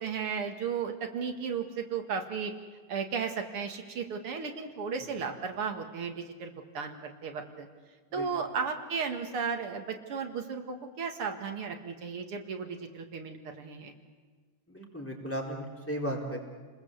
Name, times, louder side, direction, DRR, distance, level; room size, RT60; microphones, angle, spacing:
voice 1, 0.0-2.5 2.9-7.7 8.1-13.9, right 6 dB, 85° right, 4 dB, 2.8 m, -35 dB
voice 2, 14.7-16.4, equal, 5° left, -1 dB, 4.0 m, -35 dB
29.5 x 21.0 x 8.2 m, 1.5 s
omnidirectional pair, 2.4 m